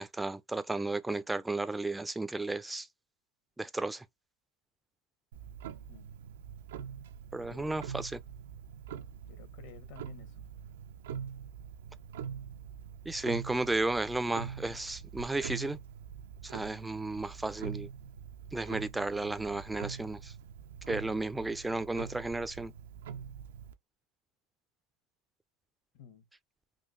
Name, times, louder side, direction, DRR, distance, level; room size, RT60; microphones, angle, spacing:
voice 1, 0.0-2.9 3.6-4.0 7.3-8.2 13.1-15.8 16.4-17.9 18.5-20.3 20.9-22.7, right 2 dB, 10° right, 0.4 m, -33 dB
Clock, 5.3-23.7, right 8 dB, 85° right, 0.5 m, -44 dB
voice 2, 7.5-7.8 9.3-10.4 25.9-26.3, left 7 dB, 60° left, 1.1 m, -53 dB
3.7 x 2.3 x 2.5 m
supercardioid pair, 115°, 0 cm